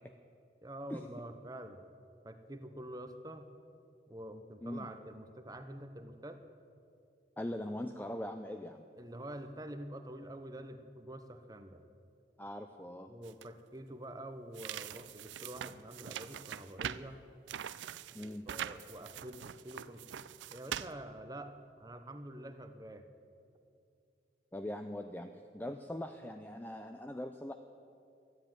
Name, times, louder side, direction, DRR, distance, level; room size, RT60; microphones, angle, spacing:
voice 1, 0.6-1.8 2.2-3.5 4.1-6.4 9.0-11.8 13.1-17.2 18.2-20.0 20.5-21.5 21.8-23.1, right 1 dB, 20° right, 8 dB, 0.8 m, -47 dB
voice 2, 7.4-8.8 12.4-13.1 18.1-18.5 24.5-27.5, left 1 dB, 10° left, 6 dB, 0.4 m, -41 dB
sound 1, 13.2-13.5 14.5-17.1 17.5-20.9, right 9 dB, 85° right, 0.4 m, -43 dB
13.0 x 9.8 x 9.0 m, 2.5 s
head